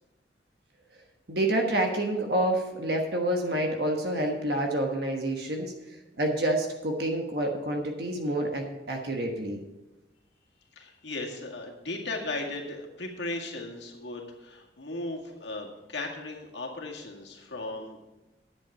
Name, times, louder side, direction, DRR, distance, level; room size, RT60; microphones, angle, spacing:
voice 1, 1.3-5.7 6.2-9.6, right 1 dB, 60° right, 2 dB, 1.3 m, -28 dB
voice 2, 10.8-18.1, left 2 dB, 70° left, -1 dB, 2.1 m, -36 dB
10.5 x 8.1 x 5.7 m, 1.0 s
head